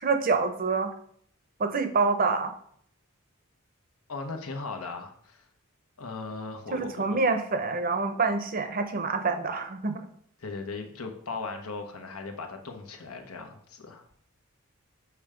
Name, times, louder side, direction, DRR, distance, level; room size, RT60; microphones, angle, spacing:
voice 1, 0.0-0.9 1.6-2.5 6.7-10.0, right 4 dB, 40° right, 8 dB, 0.7 m, -26 dB
voice 2, 4.1-5.5 6.0-7.2 10.4-14.0, left 3 dB, 90° left, 4 dB, 1.1 m, -38 dB
7.0 x 3.3 x 5.0 m, 0.63 s
head